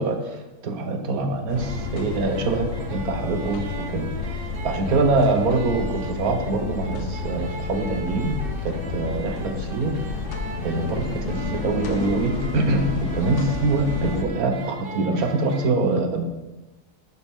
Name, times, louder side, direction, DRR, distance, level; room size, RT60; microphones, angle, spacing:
voice 1, 0.0-8.4 8.6-9.9 10.6-16.2, right 3 dB, 70° right, 6 dB, 1.4 m, -24 dB
sound 1, 1.5-14.2, left 5 dB, 55° left, 1.0 m, -31 dB
sound 2, 1.5-15.7, right 4 dB, 50° right, 0.8 m, -39 dB
10.5 x 7.2 x 3.5 m, 1.1 s
omnidirectional pair, 1.6 m